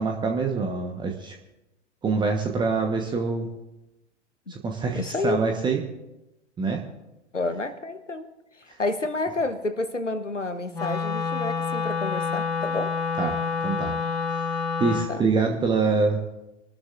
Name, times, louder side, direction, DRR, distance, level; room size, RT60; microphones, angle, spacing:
voice 1, 0.0-1.3 2.0-3.5 4.5-5.8 6.6-6.8 13.2-13.4 13.6-13.9 14.3-16.2, right 4 dB, 15° right, 2 dB, 1.2 m, -25 dB
voice 2, 4.9-5.4 7.3-8.3 8.7-12.9 15.1-15.2, left 2 dB, 90° left, 11 dB, 1.1 m, -29 dB
Wind instrument woodwind instrument, 10.7-15.1, left 5 dB, 10° left, 6.0 m, -28 dB
26.5 x 13.0 x 2.6 m, 0.95 s
figure-of-eight pair, 105°, 35 cm